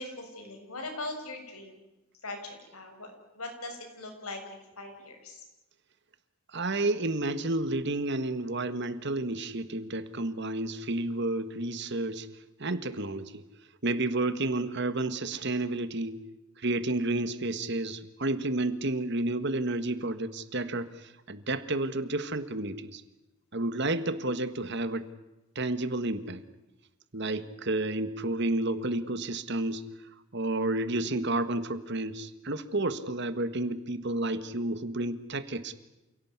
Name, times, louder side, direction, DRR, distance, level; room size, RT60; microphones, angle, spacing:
voice 1, 0.0-1.8 2.2-5.4, left 2 dB, 90° left, 4 dB, 6.8 m, -41 dB
voice 2, 6.5-12.3 12.6-13.4 13.8-16.2 16.6-23.0 23.5-25.1 25.5-26.4 27.1-29.9 30.3-35.7, right 2 dB, 50° right, 12 dB, 1.6 m, -31 dB
28.0 x 18.0 x 9.6 m, 1.0 s
head